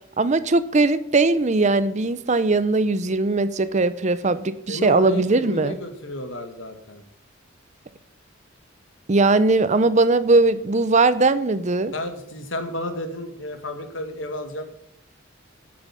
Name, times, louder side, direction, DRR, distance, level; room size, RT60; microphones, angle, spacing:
voice 1, 0.2-5.8 9.1-11.9, right 3 dB, 35° right, 14 dB, 0.6 m, -20 dB
voice 2, 4.7-7.0 11.9-14.6, left 1 dB, 70° left, 7 dB, 1.8 m, -32 dB
9.0 x 7.8 x 8.5 m, 0.75 s
head